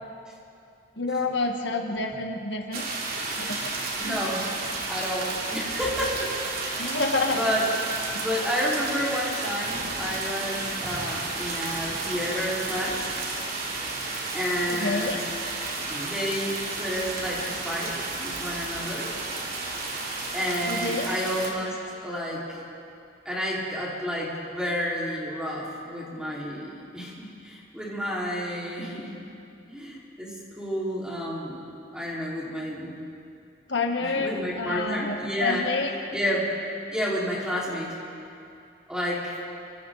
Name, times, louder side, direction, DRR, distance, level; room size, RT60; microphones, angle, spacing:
voice 1, 1.0-2.9 3.4-3.7 4.1-4.2 6.8-7.4 14.7-15.2 20.7-21.0 33.7-35.9, left 3 dB, 65° left, 3 dB, 1.5 m, -28 dB
sound 1, 2.7-21.5, right 3 dB, 50° right, 3.2 m, -32 dB
voice 2, 3.7-4.4 4.9-6.3 6.7-7.0 7.3-7.7 8.2-13.0 14.3-15.2 15.9-19.1 20.3-21.7 22.0-22.6 23.2-29.1 29.7-31.6 31.9-32.9 34.0-35.6 36.1-36.4 36.9-38.0 38.9-39.4, equal, 5° right, -6 dB, 4.6 m, -30 dB
27.5 x 25.0 x 4.1 m, 2.6 s
head